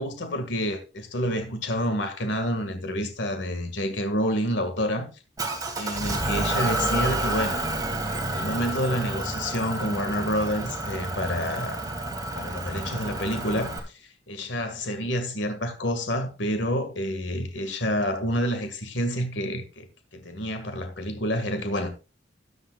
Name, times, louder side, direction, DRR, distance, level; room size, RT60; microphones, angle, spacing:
voice 1, 0.0-5.1 5.8-7.7 8.0-11.8 12.3-19.9 20.1-21.9, equal, 70° left, 2.0 m, -28 dB
Motor vehicle (road) / Engine, 5.4-13.8, right 2 dB, 20° right, 2.6 m, -29 dB
14.0 x 11.0 x 2.4 m
head